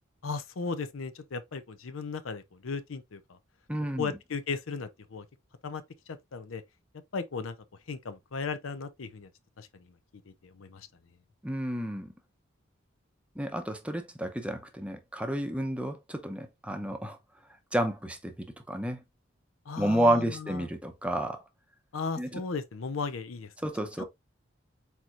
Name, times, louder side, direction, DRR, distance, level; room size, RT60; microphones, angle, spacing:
voice 1, 0.2-3.4 4.0-5.2 5.6-5.8 6.1-6.6 7.1-7.6 7.9-9.3 9.6-9.9 10.3-10.9 19.7-20.7 21.9-23.5 24.0-24.1, left 4 dB, 80° left, 0.6 m, -36 dB
voice 2, 3.7-4.1 11.4-12.1 13.4-17.2 17.7-19.0 19.8-21.4 22.2-22.4 23.6-24.0, right 1 dB, 5° right, 0.7 m, -30 dB
4.6 x 4.3 x 2.5 m
head